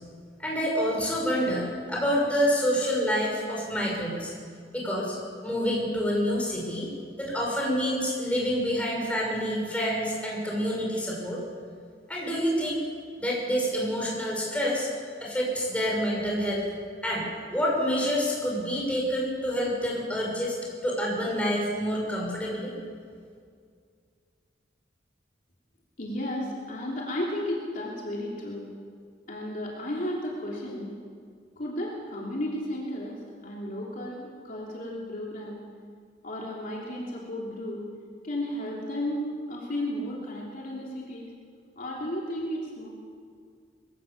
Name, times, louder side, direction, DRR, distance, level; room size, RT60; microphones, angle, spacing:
voice 1, 0.4-4.3 4.7-5.2 5.4-6.9 7.2-11.4 12.1-12.8 13.2-14.9 15.2-16.7 17.0-20.6 20.8-22.7, equal, 10° left, -3 dB, 5.9 m, -27 dB
voice 2, 26.0-28.7 29.3-31.0 31.6-35.6 36.2-37.8 38.2-41.3 41.8-42.9, left 1 dB, 50° left, -3 dB, 3.2 m, -33 dB
22.5 x 16.5 x 7.2 m, 2.1 s
head